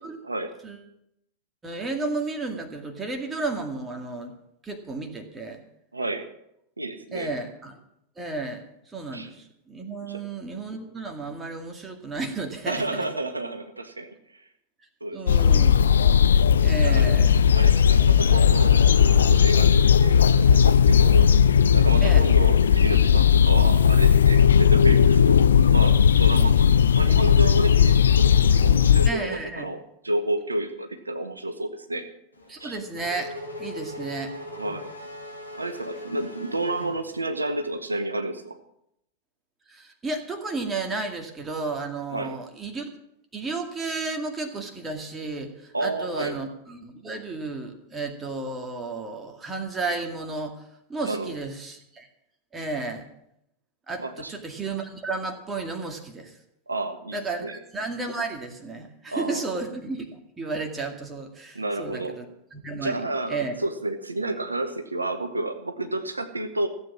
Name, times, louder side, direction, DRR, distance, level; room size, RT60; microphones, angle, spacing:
voice 1, 1.6-4.3 4.6-5.6 7.1-7.7 8.2-8.6 8.9-12.8 15.1-16.0 16.6-17.3 22.0-22.2 29.1-29.7 32.5-33.3 33.6-34.3 39.7-42.9 43.3-52.1 52.5-53.1 53.9-56.4 57.1-57.5 57.7-62.3 62.5-63.0 63.3-63.5, right 3 dB, 15° right, 4 dB, 2.1 m, -33 dB
voice 2, 5.9-6.3 6.8-7.3 9.1-9.3 10.0-10.2 12.7-14.5 15.0-15.5 16.8-17.2 17.5-21.3 21.7-25.5 25.7-32.0 32.6-32.8 34.6-34.9 35.5-38.6 42.1-42.4 45.7-46.4 51.0-51.4 54.0-54.3 56.7-57.5 59.1-59.5 61.5-62.2 62.8-66.7, right 2 dB, 80° right, 7 dB, 0.9 m, -30 dB
sound 1, 15.3-29.1, left 7 dB, 65° left, 0.5 m, -17 dB
Race car auto racing / Accelerating revving vroom, 32.4-37.6, left 1 dB, 85° left, 2.0 m, -39 dB
15.0 x 8.0 x 7.4 m, 0.78 s
figure-of-eight pair, 90°, 0 cm